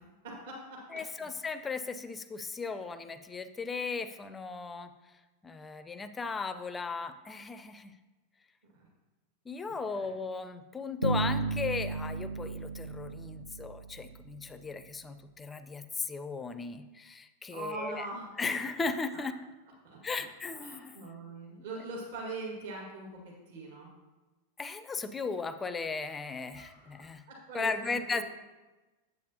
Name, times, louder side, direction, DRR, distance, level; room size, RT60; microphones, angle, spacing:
voice 1, 0.0-0.8 1.2-1.3 8.7-8.9 9.7-10.2 17.5-18.3 19.1-19.2 19.8-20.2 20.6-23.1 23.5-23.9 26.5-28.2, right 3 dB, 55° right, -2 dB, 1.9 m, -42 dB
voice 2, 0.9-4.9 5.4-8.0 9.5-18.1 18.4-19.4 20.0-21.1 24.6-27.2 27.5-28.2, left 4 dB, 15° left, 11 dB, 0.4 m, -36 dB
Bass guitar, 11.0-14.1, right 3 dB, 80° right, 0.5 m, -34 dB
8.3 x 8.1 x 2.8 m, 1.1 s
figure-of-eight pair, 90°, 0 cm